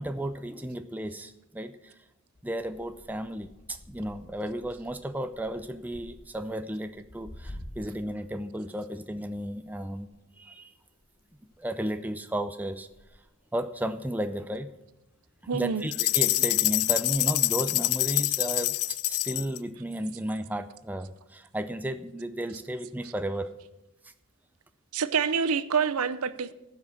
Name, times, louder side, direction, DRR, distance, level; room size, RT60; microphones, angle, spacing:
voice 1, 0.0-1.9 2.4-10.1 10.4-10.7 11.6-12.9 13.5-14.7 15.5-18.7 19.1-23.5, right 1 dB, 5° right, 0.5 m, -33 dB
sound 1, 2.3-8.2 8.4-15.5 15.8-16.6 17.2-19.1 19.5-19.9 20.6-20.7, left 1 dB, 45° left, 1.3 m, -51 dB
voice 2, 15.5-15.9 24.9-26.5, right 6 dB, 85° right, 0.6 m, -27 dB
sound 2, 15.9-19.6, left 19 dB, 80° left, 0.3 m, -26 dB
15.0 x 6.0 x 6.5 m
head